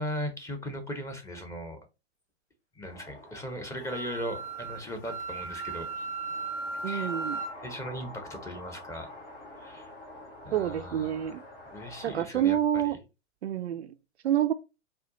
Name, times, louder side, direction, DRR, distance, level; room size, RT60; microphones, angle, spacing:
voice 1, 0.0-1.8 2.7-6.1 6.8-7.1 7.6-9.1 9.6-9.9 10.4-11.4 11.7-13.0, equal, 10° left, 0.8 m, -38 dB
sound 1, 2.9-12.2, left 1 dB, 25° left, 2.4 m, -48 dB
Wind instrument woodwind instrument, 3.8-7.5, right 3 dB, 50° left, 2.3 m, -36 dB
voice 2, 6.8-7.4 10.5-11.4 12.0-12.9 13.4-13.9 14.2-14.5, right 11 dB, 65° right, 0.5 m, -27 dB
4.3 x 2.4 x 3.7 m
figure-of-eight pair, 105°, 35 cm